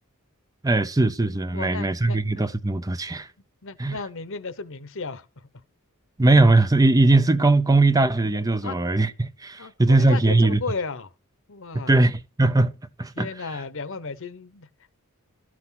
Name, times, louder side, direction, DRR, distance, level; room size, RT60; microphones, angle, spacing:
voice 1, 0.6-3.3 3.8-4.0 6.2-10.6 11.7-13.3, right 2 dB, 15° right, 0.6 m, -20 dB
voice 2, 1.5-2.2 3.6-5.5 8.6-8.8 9.6-11.1 11.5-11.9 13.2-14.7, left 4 dB, 60° left, 1.0 m, -34 dB
13.0 x 6.1 x 5.8 m
head